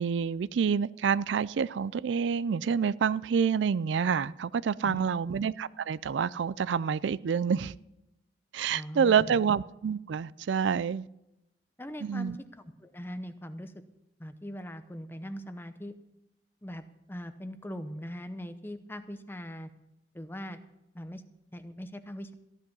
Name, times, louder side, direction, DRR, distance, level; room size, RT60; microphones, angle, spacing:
voice 1, 0.0-7.7 8.5-11.1 12.0-12.4, right 6 dB, 75° right, 0.4 m, -28 dB
voice 2, 8.7-9.4 11.8-13.7 14.2-15.9 16.6-16.8 17.1-19.7 20.1-20.6 20.9-21.2 21.5-22.3, equal, 10° left, 0.8 m, -40 dB
14.5 x 10.5 x 5.5 m
head